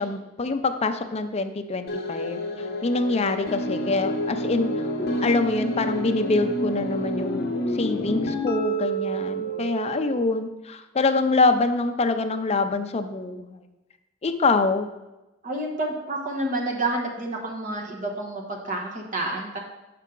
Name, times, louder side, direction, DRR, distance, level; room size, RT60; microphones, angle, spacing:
voice 1, 0.0-4.9 5.2-13.6 14.2-14.9, left 3 dB, 30° left, 8 dB, 0.5 m, -25 dB
sound 1, 1.9-10.3, equal, 50° left, 0.8 m, -28 dB
voice 2, 15.4-19.6, right 2 dB, 40° right, 0 dB, 1.1 m, -29 dB
7.2 x 5.6 x 3.8 m, 1.0 s
head